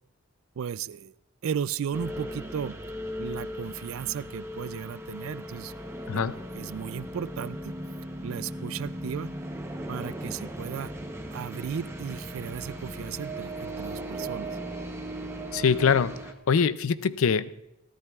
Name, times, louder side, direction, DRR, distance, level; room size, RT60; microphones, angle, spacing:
voice 1, 0.6-1.2 1.4-2.8 3.2-5.7 6.1-7.7 8.2-9.3 9.9-10.9 11.3-14.5, right 8 dB, 75° right, 18 dB, 0.3 m, -35 dB
sound 1, 1.9-16.3, right 1 dB, 10° right, 0.8 m, -37 dB
voice 2, 15.5-17.5, left 6 dB, 80° left, 16 dB, 0.4 m, -24 dB
23.5 x 14.0 x 2.4 m, 0.89 s
head